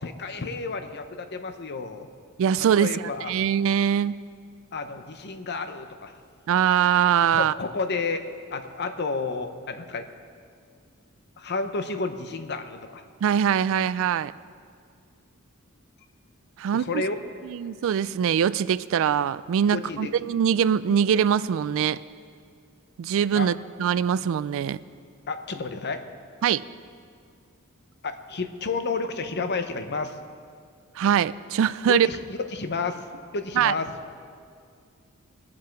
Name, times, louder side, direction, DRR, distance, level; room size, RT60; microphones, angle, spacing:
voice 1, 0.0-2.1 2.6-3.3 4.7-6.1 7.3-8.2 8.5-10.1 11.4-13.0 16.7-17.1 19.7-20.1 23.3-23.5 25.3-26.0 28.0-30.2 31.9-33.0 33.3-33.9, left 4 dB, 50° left, 8 dB, 0.8 m, -31 dB
voice 2, 2.4-4.1 6.5-7.5 13.2-14.3 16.6-17.0 17.4-22.0 23.0-24.8 26.4-26.6 31.0-32.1 33.6-33.7, right 8 dB, 65° right, 17 dB, 0.3 m, -23 dB
20.5 x 7.6 x 4.6 m, 2.2 s
head